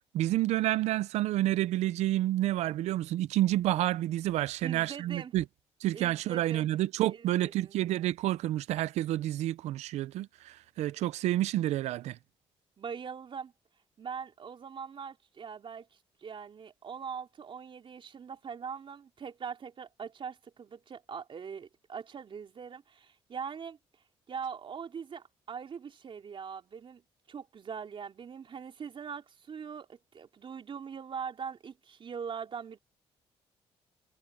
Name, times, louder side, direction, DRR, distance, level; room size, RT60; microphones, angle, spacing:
voice 1, 0.1-5.4 5.8-12.2, right 14 dB, 85° right, 0.6 m, -29 dB
voice 2, 4.6-5.3 5.9-6.7 7.1-7.7 12.8-13.5 14.0-15.9 16.2-23.8 24.3-27.0 27.3-32.8, right 6 dB, 50° right, 3.6 m, -42 dB
cardioid pair, 80°, 11 cm